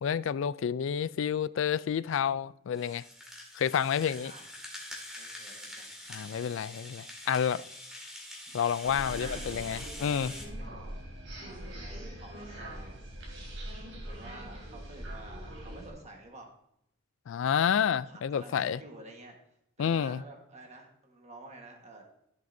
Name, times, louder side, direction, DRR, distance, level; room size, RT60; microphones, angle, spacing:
voice 1, 0.0-3.0 3.5-4.3 6.1-7.6 8.5-10.3 17.3-18.8 19.8-20.2, left 8 dB, 65° left, 0.3 m, -29 dB
Rattle (instrument), 2.7-10.4, left 1 dB, 5° right, 2.0 m, -45 dB
voice 2, 5.2-6.0 8.8-9.6 10.5-10.7 11.4-13.0 14.0-16.5 17.6-19.3 19.8-22.0, right 2 dB, 30° right, 1.4 m, -50 dB
sound 1, 8.8-15.9, right 1 dB, 65° right, 3.2 m, -42 dB
14.0 x 7.7 x 2.7 m
head